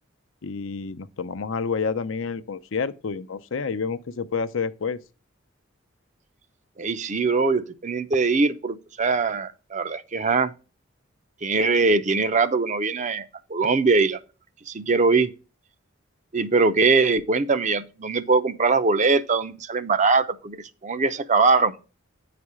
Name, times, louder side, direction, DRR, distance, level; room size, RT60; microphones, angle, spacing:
voice 1, 0.4-5.0, left 5 dB, 70° left, 0.6 m, -29 dB
voice 2, 6.8-10.5 11.4-14.2 14.7-15.3 16.3-20.6 20.8-21.7, right 4 dB, 35° right, 0.6 m, -22 dB
9.5 x 4.2 x 4.8 m
head